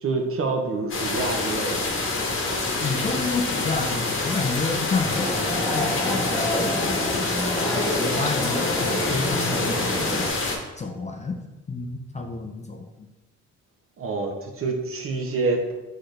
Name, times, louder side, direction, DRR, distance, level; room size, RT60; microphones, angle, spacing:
voice 1, 0.0-1.8 14.0-15.7, right 3 dB, 45° right, 2 dB, 0.9 m, -27 dB
sound 1, 0.9-10.6, left 3 dB, 45° left, 1.0 m, -27 dB
voice 2, 2.7-10.3 10.8-11.4 11.7-12.9, left 3 dB, 25° left, 3 dB, 0.4 m, -30 dB
sound 2, 5.1-10.3, left 1 dB, ahead, 1.2 m, -28 dB
4.0 x 3.8 x 3.3 m, 1.1 s
cardioid pair, 90°, 30 cm